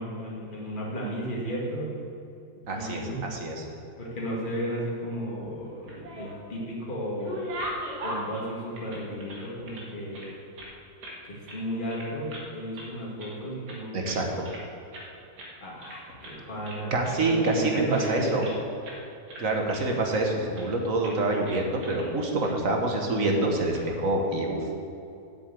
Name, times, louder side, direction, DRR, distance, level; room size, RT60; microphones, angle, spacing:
voice 1, 0.0-1.9 2.7-3.2 4.0-7.5 8.0-10.4 11.2-14.2 15.6-18.5, equal, 30° left, -4 dB, 2.1 m, -34 dB
voice 2, 2.7-3.7 13.9-14.5 16.9-18.5 19.4-24.6, right 2 dB, 55° right, 2 dB, 1.7 m, -26 dB
sound 1, 5.7-6.6 6.9-9.9 10.1-11.2 11.5-11.6 11.9-12.5 12.7-13.4 13.7-14.7 14.9-15.1 15.4-15.5 15.8-16.4 16.7-18.6 18.8-19.0 19.3-20.2 20.6-20.8 21.0-21.2 21.5-22.1 22.4-22.5 23.5-23.8, equal, 75° right, 2.3 m, -40 dB
8.3 x 7.0 x 8.3 m, 2.7 s
omnidirectional pair, 1.8 m